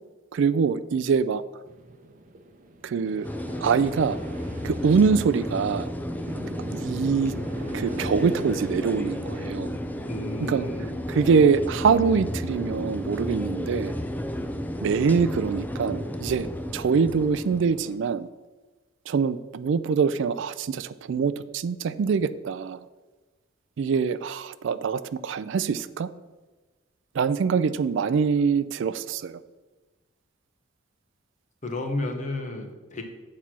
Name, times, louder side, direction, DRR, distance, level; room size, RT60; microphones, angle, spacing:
voice 1, 0.3-1.4 2.8-3.3 3.6-4.2 4.6-5.9 6.8-7.3 7.7-9.7 10.4-10.7 11.1-13.9 14.8-16.5 16.7-18.3 19.1-22.8 23.8-26.1 27.2-29.3, right 5 dB, 65° right, 14 dB, 0.3 m, -24 dB
sound 1, 1.6-11.5, right 1 dB, 40° right, 0.8 m, -41 dB
sound 2, 3.2-18.0, equal, 10° left, 0.4 m, -32 dB
voice 2, 10.1-10.9 31.6-33.0, left 2 dB, 40° left, 4 dB, 1.1 m, -32 dB
8.0 x 4.3 x 6.1 m, 1.2 s
head